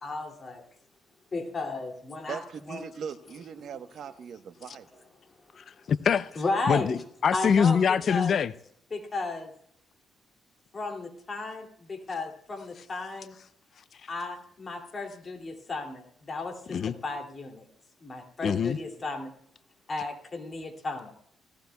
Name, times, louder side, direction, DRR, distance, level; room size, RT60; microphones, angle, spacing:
voice 1, 0.0-0.6 1.3-2.4 2.7-2.8 6.4-7.0 7.3-8.4 8.9-9.5 10.7-13.3 14.1-17.7 18.0-19.3 19.9-21.1, left 3 dB, 35° left, 2.5 m, -34 dB
voice 2, 2.3-5.0, right 7 dB, 60° right, 1.0 m, -40 dB
voice 3, 5.6-6.3 6.7-8.5 16.7-16.9 18.4-18.8, left 7 dB, 55° left, 0.5 m, -24 dB
17.5 x 15.0 x 2.3 m
cardioid pair, 90°, 0 cm